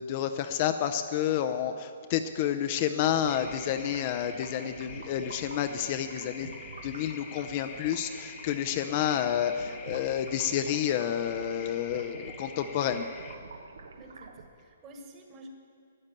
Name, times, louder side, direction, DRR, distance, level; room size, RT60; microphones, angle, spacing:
voice 1, 0.0-6.5 6.8-13.1, left 10 dB, 35° left, 8 dB, 0.6 m, -29 dB
sound 1, 3.0-14.5, right 4 dB, 85° right, 1.3 m, -47 dB
sound 2, 3.3-13.3, left 5 dB, 20° left, 1.0 m, -47 dB
voice 2, 14.0-15.5, right 1 dB, 20° right, 3 dB, 1.6 m, -50 dB
12.0 x 9.6 x 9.0 m, 2.4 s
hypercardioid pair, 160°, 0 cm